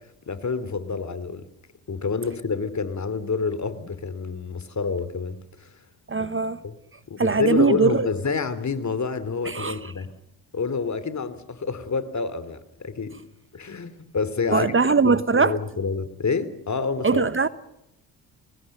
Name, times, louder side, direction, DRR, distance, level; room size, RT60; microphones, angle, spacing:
voice 1, 0.3-1.4 1.9-5.7 6.2-6.3 6.6-6.7 7.1-10.1 10.5-13.2 13.5-17.2, left 5 dB, 35° left, 3.0 m, -28 dB
voice 2, 6.1-6.6 7.2-8.1 9.4-9.9 14.5-15.6 17.0-17.5, right 4 dB, 25° right, 1.1 m, -21 dB
27.0 x 20.0 x 6.7 m
hypercardioid pair, 50°, 47 cm